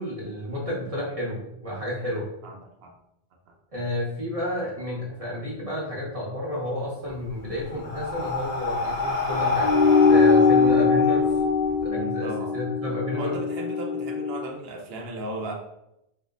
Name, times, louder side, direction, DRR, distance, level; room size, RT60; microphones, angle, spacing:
voice 1, 0.0-2.3 3.7-11.3 11.8-13.4, left 1 dB, 35° right, -5 dB, 0.9 m, -31 dB
voice 2, 2.4-3.0 3.5-3.6 11.9-12.6 13.1-15.5, right 2 dB, 65° right, 2 dB, 0.8 m, -36 dB
Breathing, 7.1-11.8, left 3 dB, 75° left, 1.0 m, -29 dB
sound 1, 9.6-14.4, left 5 dB, 50° left, 0.6 m, -21 dB
2.7 x 2.1 x 3.5 m, 0.83 s
omnidirectional pair, 1.2 m